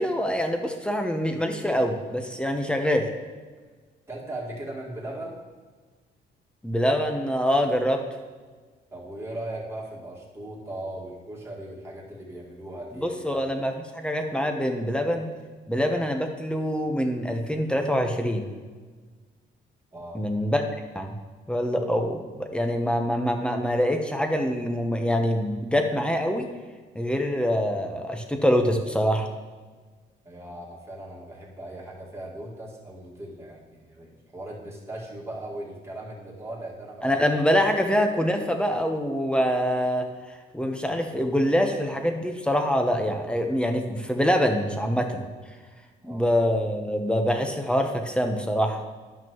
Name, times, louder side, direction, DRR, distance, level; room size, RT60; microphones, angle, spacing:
voice 1, 0.0-3.1 6.6-8.0 13.0-15.3 15.7-18.5 20.1-20.6 20.9-21.2 21.5-26.5 26.9-29.3 37.0-45.2 46.0-48.8, equal, 5° left, 4 dB, 0.9 m, -25 dB
voice 2, 4.1-5.4 8.9-13.4 19.9-20.3 30.3-37.1 46.0-46.3, right 1 dB, 15° right, -5 dB, 2.0 m, -38 dB
10.5 x 5.9 x 3.1 m, 1.4 s
cardioid pair, 90°, 20 cm